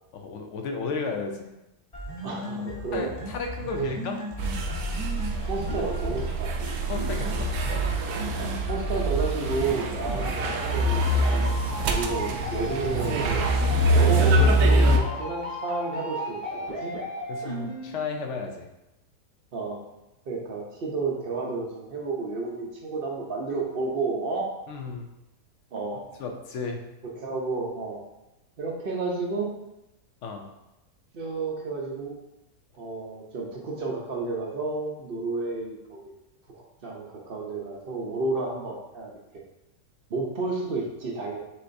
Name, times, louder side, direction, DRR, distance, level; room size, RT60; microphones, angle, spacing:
voice 1, 0.1-1.5 2.9-4.2 6.9-7.9 10.1-10.3 17.3-18.7 24.7-25.1 26.2-26.8 30.2-30.5, left 4 dB, 70° left, 4 dB, 0.7 m, -33 dB
sound 1, 1.9-17.9, equal, 30° left, 0.7 m, -36 dB
voice 2, 2.2-3.1 3.8-3.9 5.4-6.5 8.3-11.0 11.3-11.4 11.9-13.4 13.9-16.9 17.4-17.6 19.5-19.8 20.3-24.5 25.7-26.0 27.2-28.0 28.6-29.5 31.1-32.1 32.7-36.0 36.5-39.1 40.1-41.4, right 3 dB, 55° right, -1 dB, 0.6 m, -31 dB
sound 2, 4.4-15.0, right 1 dB, 75° right, 1.0 m, -24 dB
5.7 x 3.3 x 2.6 m, 0.93 s
omnidirectional pair, 1.7 m